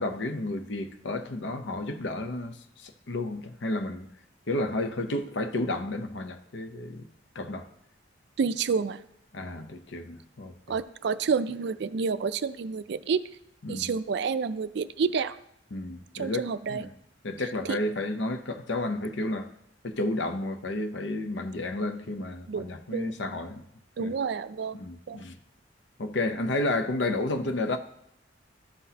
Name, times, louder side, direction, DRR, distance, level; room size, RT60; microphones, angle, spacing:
voice 1, 0.0-2.5 2.8-4.1 4.5-7.1 7.3-7.7 9.3-10.5 13.6-13.9 15.7-16.9 17.2-19.5 19.8-23.6 24.0-24.1 24.7-25.4 26.0-27.8, left 2 dB, 75° left, 0.8 m, -31 dB
voice 2, 8.4-9.0 10.7-13.2 13.7-15.4 16.2-16.9 17.7-17.8 22.5-23.1 24.0-25.2, right 5 dB, 65° right, 0.4 m, -29 dB
13.0 x 5.8 x 2.8 m
head